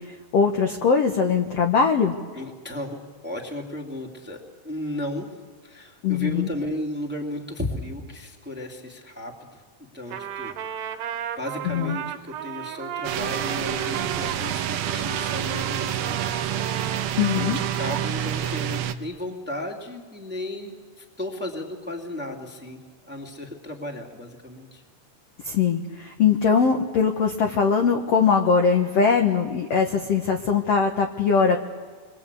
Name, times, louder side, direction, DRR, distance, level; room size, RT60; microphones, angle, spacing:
voice 1, 0.0-2.1 6.0-6.5 11.6-12.0 17.2-17.6 25.4-31.6, left 6 dB, 70° left, 3 dB, 1.5 m, -21 dB
voice 2, 2.3-5.3 5.6-9.6 9.9-10.5 11.4-16.6 17.0-22.8 23.1-24.8, left 1 dB, 5° right, 1 dB, 1.8 m, -34 dB
Trumpet, 10.1-18.2, right 9 dB, 90° right, 3.4 m, -35 dB
sound 1, 13.0-18.9, right 10 dB, 70° right, 2.6 m, -28 dB
29.0 x 23.0 x 8.4 m, 1.5 s
omnidirectional pair, 4.7 m